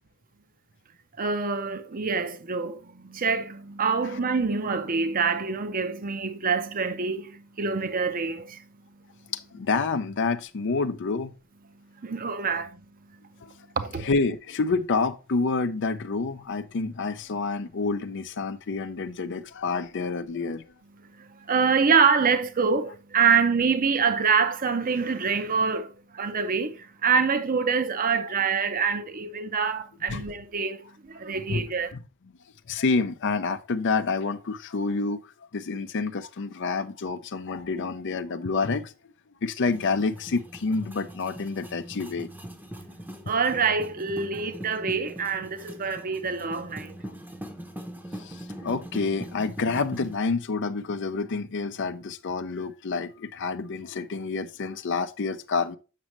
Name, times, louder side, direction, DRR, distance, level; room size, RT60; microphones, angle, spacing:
voice 1, 1.2-8.6 12.0-12.8 13.8-14.1 21.1-31.9 43.3-47.0, right 5 dB, 40° right, 0.7 m, -26 dB
voice 2, 9.3-11.3 13.4-13.5 14.0-20.7 30.1-30.2 31.5-31.7 31.9-32.0 32.7-35.2 35.5-38.9 39.4-42.3 48.2-55.8, left 4 dB, 60° left, 0.5 m, -28 dB
sound 1, 39.7-50.2, equal, 10° right, 0.8 m, -41 dB
7.5 x 6.2 x 3.0 m
head